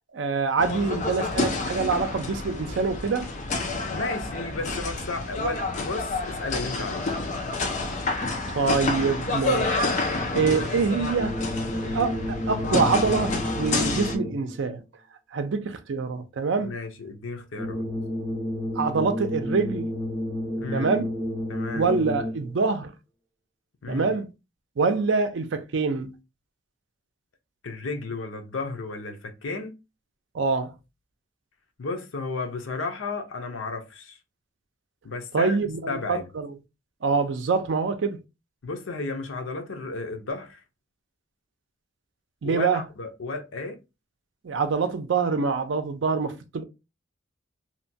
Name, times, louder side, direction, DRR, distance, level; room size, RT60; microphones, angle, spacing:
voice 1, 0.1-3.3 8.5-9.8 10.3-11.4 11.9-14.8 15.3-16.7 18.7-19.9 20.7-21.1 21.7-22.9 23.9-24.3 24.8-26.1 30.3-30.7 35.3-36.5 37.0-38.2 42.4-42.8 44.4-46.6, right 4 dB, 70° right, 0.4 m, -25 dB
sound 1, 0.6-14.2, left 3 dB, 40° left, 0.5 m, -29 dB
voice 2, 3.9-7.2 16.6-17.9 20.5-20.9 21.5-21.9 23.8-24.1 27.6-29.8 31.8-34.2 35.0-36.3 38.6-40.6 42.4-43.8, left 3 dB, 85° left, 0.6 m, -33 dB
sound 2, 11.1-14.6 17.5-22.6, left 1 dB, 5° left, 0.9 m, -31 dB
2.8 x 2.2 x 2.6 m
head